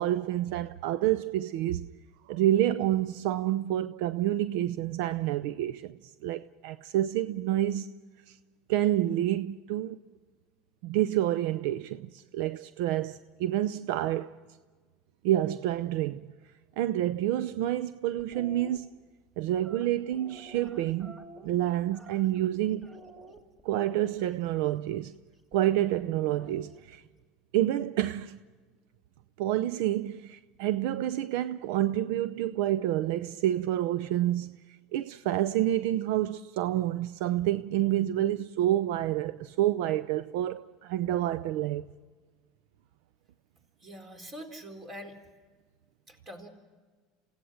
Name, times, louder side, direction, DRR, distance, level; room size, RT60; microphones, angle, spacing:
voice 1, 0.0-1.9 2.2-7.9 8.3-8.4 8.7-10.0 10.8-14.4 15.2-16.3 16.8-18.9 19.4-22.9 23.6-25.2 25.5-27.0 27.5-28.4 29.4-34.6 34.9-41.9, right 13 dB, 75° right, 0.5 m, -28 dB
sound 1, 18.2-18.8 19.6-22.5 22.8-24.3 25.5-26.9, right 2 dB, 15° right, 2.2 m, -51 dB
voice 2, 43.8-45.2 46.1-46.5, equal, 30° right, 4.2 m, -44 dB
28.0 x 17.0 x 6.4 m
supercardioid pair, 115°, 0 cm